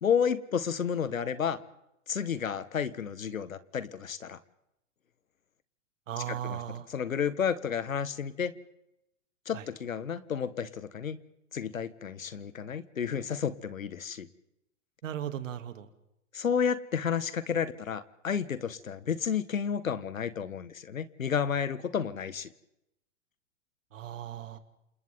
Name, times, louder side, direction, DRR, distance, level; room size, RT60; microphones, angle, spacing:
voice 1, 0.0-1.6 2.1-4.4 6.2-6.6 6.9-8.5 9.4-11.2 11.5-14.3 16.3-22.5, left 7 dB, 85° left, 15 dB, 1.6 m, -31 dB
voice 2, 6.1-6.9 9.5-9.6 15.0-15.9 23.9-24.6, right 10 dB, 70° right, 9 dB, 2.8 m, -37 dB
29.0 x 28.0 x 3.7 m, 0.84 s
hypercardioid pair, 110°, 40 cm